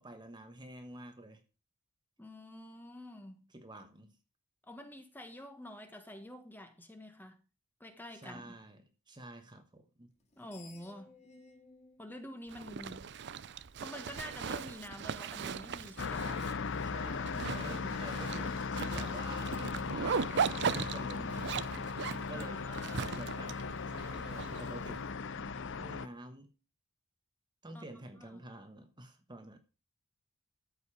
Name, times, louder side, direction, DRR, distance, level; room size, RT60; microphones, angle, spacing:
voice 1, 0.0-1.4 3.5-4.2 8.1-10.1 16.8-21.9 22.3-22.6 23.0-26.5 27.6-29.6, right 1 dB, 20° right, 1.2 m, -49 dB
voice 2, 2.2-3.5 4.7-7.4 7.8-8.5 10.4-11.2 12.0-13.1 13.8-16.6 22.3-23.1 27.7-27.9 28.2-28.4, left 1 dB, 10° left, 1.5 m, -48 dB
Screech, 10.1-13.4, left 4 dB, 30° left, 2.2 m, -59 dB
Zipper (clothing), 12.5-25.0, right 6 dB, 55° right, 0.5 m, -38 dB
sound 1, 16.0-26.1, left 5 dB, 60° left, 0.7 m, -38 dB
13.5 x 5.4 x 6.2 m
head